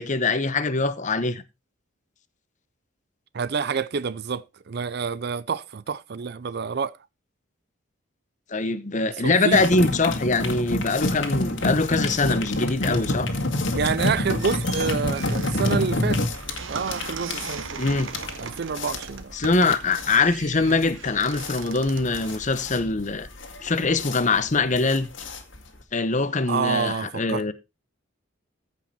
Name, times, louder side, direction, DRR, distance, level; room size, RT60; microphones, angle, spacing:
voice 1, 0.0-1.4 8.5-13.3 17.8-18.1 19.3-23.3 23.6-25.1 25.9-27.5, left 3 dB, 40° left, 0.9 m, -23 dB
voice 2, 3.3-6.9 9.2-9.6 13.7-16.3 16.7-17.8 18.4-19.3 26.5-27.5, right 5 dB, 55° right, 0.5 m, -28 dB
sound 1, 9.5-25.8, left 1 dB, 80° left, 1.9 m, -28 dB
sound 2, 14.0-23.1, right 6 dB, 90° right, 1.2 m, -39 dB
14.5 x 5.6 x 4.3 m
head